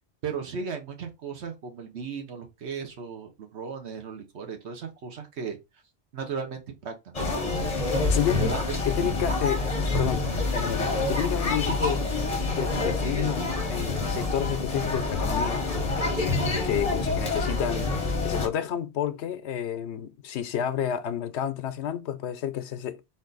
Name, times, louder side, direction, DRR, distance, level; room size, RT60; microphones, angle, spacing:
voice 1, 0.2-5.6 6.1-7.1 8.4-8.8, right 6 dB, 85° right, 1.2 m, -36 dB
sound 1, 7.1-18.5, left 3 dB, 35° left, 1.0 m, -27 dB
voice 2, 8.1-8.5 8.9-10.3 10.5-12.0 12.5-23.0, left 10 dB, 90° left, 0.9 m, -30 dB
4.2 x 2.6 x 3.9 m
omnidirectional pair, 1.1 m